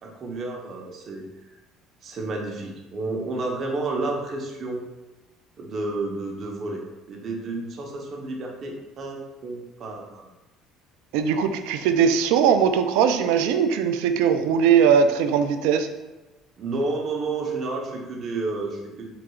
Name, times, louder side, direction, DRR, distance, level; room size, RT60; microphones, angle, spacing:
voice 1, 0.0-1.2 2.0-4.8 5.6-6.8 7.1-10.2 16.6-19.1, right 3 dB, 45° right, 0 dB, 0.9 m, -31 dB
voice 2, 11.1-15.9, right 7 dB, 85° right, 8 dB, 0.3 m, -20 dB
4.7 x 3.8 x 2.3 m, 1.1 s
supercardioid pair, 100°, 0 cm